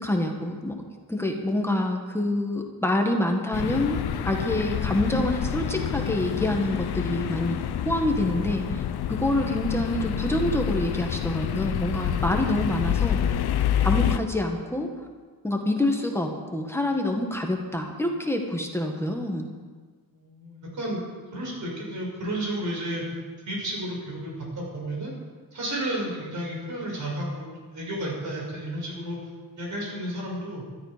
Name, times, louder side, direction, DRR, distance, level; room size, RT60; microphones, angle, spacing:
voice 1, 0.0-0.7 1.1-8.8 9.1-13.4 13.8-14.9 15.4-19.5, left 1 dB, 5° left, 2 dB, 1.6 m, -26 dB
sound 1, 3.5-14.2, left 10 dB, 85° left, 0.8 m, -28 dB
voice 2, 20.1-21.0 21.3-23.0 23.5-25.1 25.5-29.2 29.6-30.6, right 1 dB, 50° right, -2 dB, 6.6 m, -32 dB
19.5 x 13.5 x 5.1 m, 1.5 s
wide cardioid pair, 150°, 37 cm